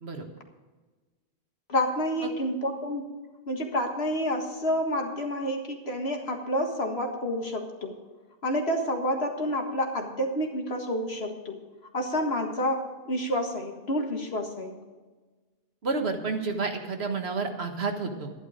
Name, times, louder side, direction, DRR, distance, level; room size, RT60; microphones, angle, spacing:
voice 1, 1.7-3.1 3.5-8.0 8.4-11.6 11.9-14.8, equal, 85° left, 3 dB, 2.0 m, -29 dB
voice 2, 15.8-18.3, right 4 dB, 90° right, 4 dB, 1.8 m, -30 dB
12.0 x 11.0 x 5.1 m, 1.3 s
omnidirectional pair, 1.0 m